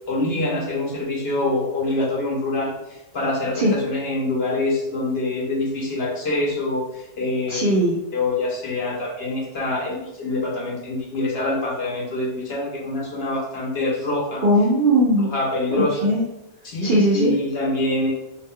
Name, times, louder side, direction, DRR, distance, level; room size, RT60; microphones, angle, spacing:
voice 1, 0.1-7.6 8.1-14.4 15.2-16.1 16.6-18.1, left 2 dB, 60° left, -3 dB, 0.7 m, -25 dB
voice 2, 7.5-8.0 14.4-15.3 15.7-16.2 16.8-17.3, right 1 dB, 65° right, -4 dB, 0.5 m, -18 dB
2.5 x 2.1 x 3.5 m, 0.90 s
omnidirectional pair, 1.5 m